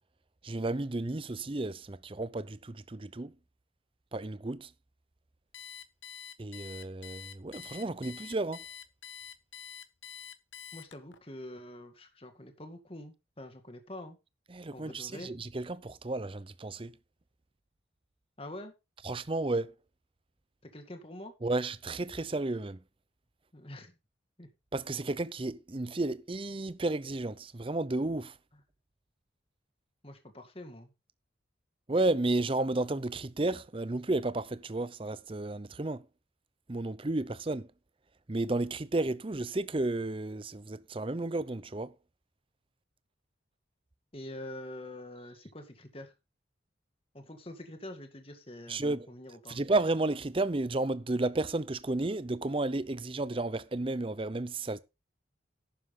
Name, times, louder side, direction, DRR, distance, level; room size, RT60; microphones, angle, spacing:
voice 1, 0.4-3.3 4.1-4.7 6.4-8.6 14.5-16.9 19.0-19.7 21.4-22.8 24.7-28.3 31.9-36.0 36.7-37.7 38.3-41.9 48.7-49.1 49.5-54.8, right 2 dB, 25° right, 0.6 m, -32 dB
Alarm, 5.5-11.2, left 8 dB, 70° left, 1.1 m, -46 dB
voice 2, 10.7-14.2 14.7-15.3 18.4-18.7 20.6-21.3 23.5-23.9 24.4-24.5 30.0-30.9 44.1-46.1 47.1-49.6, left 1 dB, 30° left, 2.1 m, -45 dB
11.5 x 9.7 x 3.7 m
head